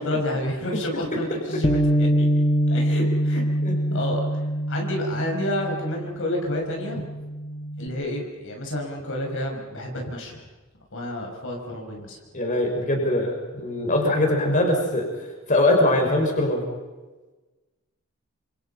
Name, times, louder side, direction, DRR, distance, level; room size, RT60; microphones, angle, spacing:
voice 1, 0.0-2.3 2.7-3.4 3.9-7.0 7.8-10.4 10.9-12.2, left 1 dB, 65° left, 1 dB, 5.7 m, -30 dB
Bass guitar, 1.6-7.9, equal, 20° left, 1.3 m, -24 dB
voice 2, 12.3-15.1 15.5-16.6, left 1 dB, 35° left, 2 dB, 6.0 m, -22 dB
29.0 x 27.5 x 5.7 m, 1.2 s
head